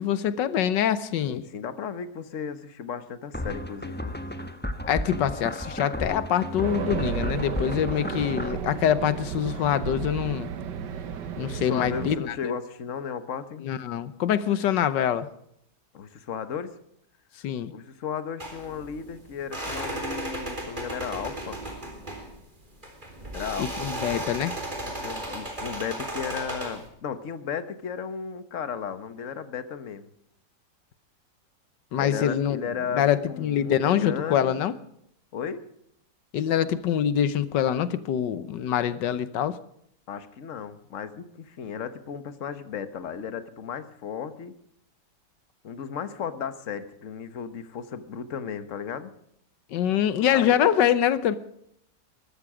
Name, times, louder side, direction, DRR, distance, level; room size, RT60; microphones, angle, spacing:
voice 1, 0.0-1.4 4.9-10.5 11.4-12.5 13.6-15.3 17.4-17.7 23.6-24.5 31.9-32.6 32.9-34.7 36.3-39.5 49.7-51.4, left 10 dB, 90° left, 14 dB, 1.6 m, -25 dB
voice 2, 1.2-4.2 11.4-13.7 15.9-16.7 17.7-21.6 23.3-23.7 25.0-30.1 31.9-34.6 35.3-35.7 40.1-44.5 45.6-49.1 50.3-50.5, left 7 dB, 50° left, 12 dB, 1.5 m, -35 dB
sound 1, 3.3-8.5, left 1 dB, 5° left, 1.1 m, -33 dB
Race car auto racing, 6.6-12.2, right 8 dB, 80° right, 1.6 m, -33 dB
sound 2, 18.4-26.9, right 1 dB, 25° right, 3.8 m, -35 dB
21.0 x 13.5 x 5.0 m, 0.72 s
omnidirectional pair, 1.8 m